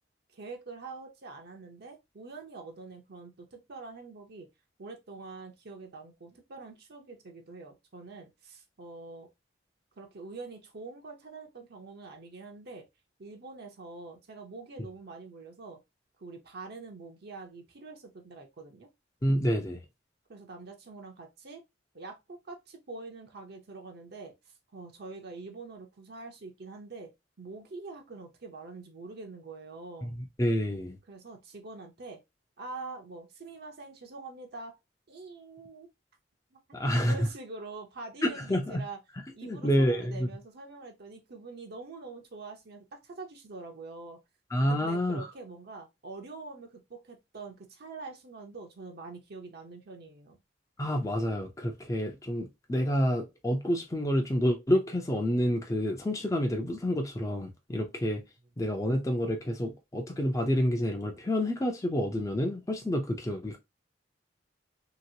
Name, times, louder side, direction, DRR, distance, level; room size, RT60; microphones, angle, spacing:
voice 1, 0.3-4.5 4.8-9.3 10.0-12.9 13.2-15.8 16.2-18.9 20.3-21.6 21.9-27.1 27.4-30.1 31.1-32.2 32.6-34.8 35.1-35.9 36.5-39.0 39.3-44.2 44.7-50.4, right 3 dB, 60° right, 0.7 m, -45 dB
voice 2, 19.2-19.8 30.0-30.1 30.4-31.0 36.7-37.2 38.2-38.8 39.4-40.3 44.5-45.3 50.8-58.2 58.6-63.6, equal, 15° left, 0.5 m, -28 dB
2.9 x 2.9 x 2.7 m
head